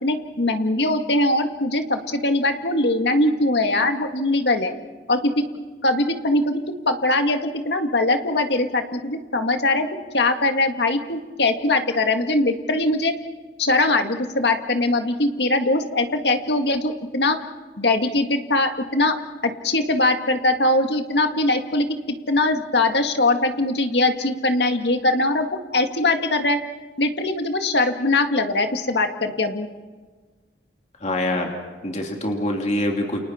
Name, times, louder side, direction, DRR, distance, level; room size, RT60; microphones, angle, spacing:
voice 1, 0.0-4.7 5.1-5.3 5.8-9.9 10.1-13.1 13.6-17.4 17.8-19.2 19.4-26.6 27.0-29.7, left 2 dB, 70° left, 6 dB, 2.0 m, -21 dB
voice 2, 31.0-31.5 31.8-33.2, left 1 dB, 40° left, 1 dB, 2.9 m, -24 dB
30.0 x 29.0 x 4.5 m, 1.3 s
head